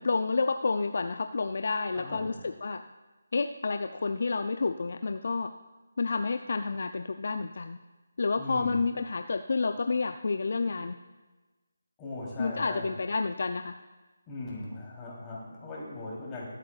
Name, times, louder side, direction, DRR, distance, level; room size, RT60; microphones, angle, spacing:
voice 1, 0.0-2.8 3.3-5.5 6.0-7.8 8.2-10.9 12.4-13.7, left 4 dB, 55° left, 8 dB, 0.4 m, -29 dB
voice 2, 1.9-2.3 8.4-8.8 12.0-12.9 14.3-16.5, left 2 dB, 15° left, -5 dB, 3.3 m, -39 dB
21.0 x 8.3 x 2.4 m, 1.2 s
figure-of-eight pair, 155°, 0 cm